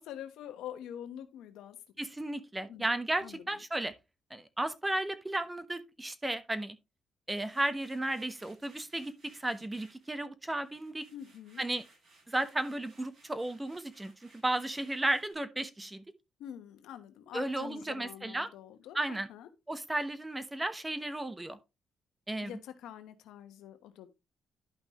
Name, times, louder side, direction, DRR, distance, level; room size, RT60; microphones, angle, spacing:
voice 1, 0.0-1.8 2.7-2.9 3.2-3.6 11.1-11.6 16.4-19.5 22.4-24.1, left 10 dB, 90° left, 1.1 m, -46 dB
voice 2, 2.0-3.9 4.3-6.8 7.3-11.0 11.6-11.8 12.3-16.0 17.3-18.5 18.9-19.3 19.7-21.6 22.3-22.5, right 1 dB, 15° right, 1.0 m, -34 dB
sound 1, 7.3-10.2 10.5-15.3, right 2 dB, 50° right, 6.2 m, -63 dB
11.5 x 5.5 x 3.0 m
cardioid pair, 90°, 0 cm